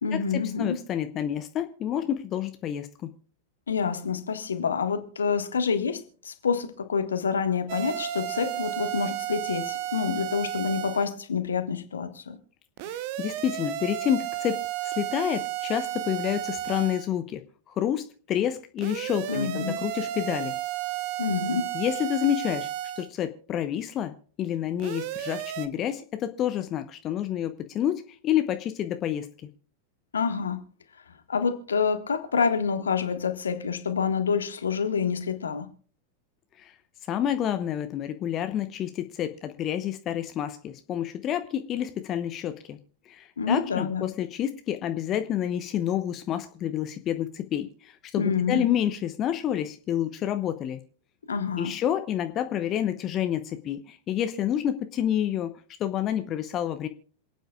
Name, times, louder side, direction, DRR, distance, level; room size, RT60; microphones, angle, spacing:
voice 1, 0.0-0.8 3.7-12.4 19.3-19.8 21.2-21.7 30.1-30.6 31.3-35.7 43.4-44.1 48.2-48.7 51.3-51.7, left 6 dB, 70° left, 1.6 m, -27 dB
voice 2, 0.6-3.1 12.9-20.6 21.7-22.7 23.0-29.3 36.6-36.7 37.1-42.8 43.1-50.8 51.6-55.5 55.8-56.9, left 10 dB, 30° left, 0.9 m, -29 dB
sound 1, 7.7-11.1 12.8-17.1 18.8-23.1 24.8-25.7, right 13 dB, 45° right, 0.9 m, -33 dB
27.5 x 9.1 x 2.4 m
figure-of-eight pair, 90°, 0 cm